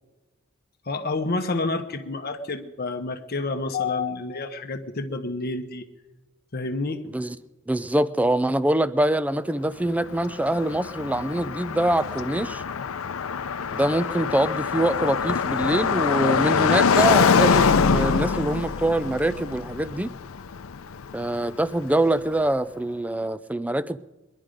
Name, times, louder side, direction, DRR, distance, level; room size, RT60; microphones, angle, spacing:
voice 1, 0.9-5.9 6.5-7.0, left 3 dB, 50° left, 0.9 m, -29 dB
voice 2, 7.7-12.6 13.7-20.1 21.1-24.0, right 1 dB, 5° right, 0.4 m, -24 dB
Car passing by, 9.9-21.9, left 6 dB, 90° left, 0.6 m, -24 dB
21.5 x 11.0 x 5.1 m
head